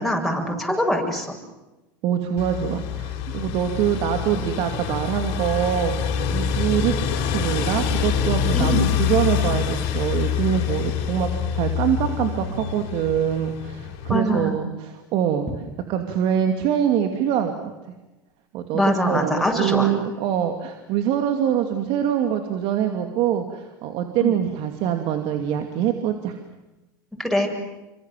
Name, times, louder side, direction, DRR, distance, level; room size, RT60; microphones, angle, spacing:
voice 1, 0.0-1.3 8.5-8.9 14.1-14.6 18.7-19.9 24.2-24.4 27.2-27.5, equal, ahead, 1 dB, 7.4 m, -23 dB
voice 2, 2.0-6.9 7.3-15.5 15.9-17.5 18.5-26.4, right 9 dB, 55° right, 5 dB, 2.7 m, -24 dB
sound 1, 2.4-14.1, left 8 dB, 60° left, 4.9 m, -26 dB
29.0 x 24.5 x 7.7 m, 1.1 s
hypercardioid pair, 95°, 11 cm